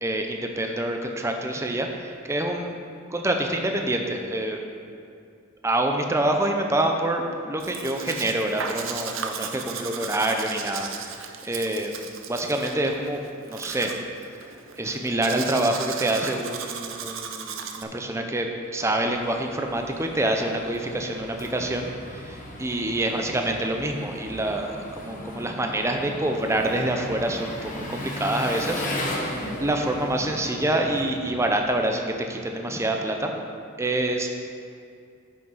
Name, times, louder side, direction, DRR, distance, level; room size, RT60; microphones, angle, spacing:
voice 1, 0.0-2.8 3.1-4.6 5.6-11.9 12.3-13.9 14.2-14.3 14.8-33.3 33.8-34.3, right 1 dB, 15° right, 3 dB, 0.7 m, -26 dB
Domestic sounds home sounds, 7.6-17.8, right 6 dB, 80° right, 0.7 m, -36 dB
Engine, 18.6-32.1, left 1 dB, 40° left, 1.1 m, -36 dB
9.1 x 6.4 x 5.7 m, 2.4 s
head